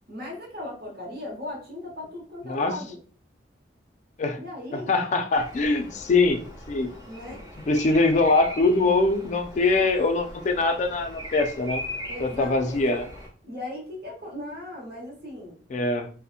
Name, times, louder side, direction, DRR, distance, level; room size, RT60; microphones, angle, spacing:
voice 1, 0.1-3.0 4.4-4.9 7.1-7.5 12.1-12.8 13.4-15.6, left 1 dB, 55° right, -2 dB, 1.0 m, -37 dB
voice 2, 2.5-2.8 4.2-4.4 4.7-6.4 6.7-6.9 7.3-7.4 7.7-11.8 12.2-13.1 15.7-16.1, left 3 dB, 40° left, 7 dB, 0.3 m, -23 dB
Bird vocalization bird call bird song, 5.4-13.3, equal, 20° right, 1.1 m, -40 dB
2.7 x 2.0 x 2.4 m, 0.43 s
head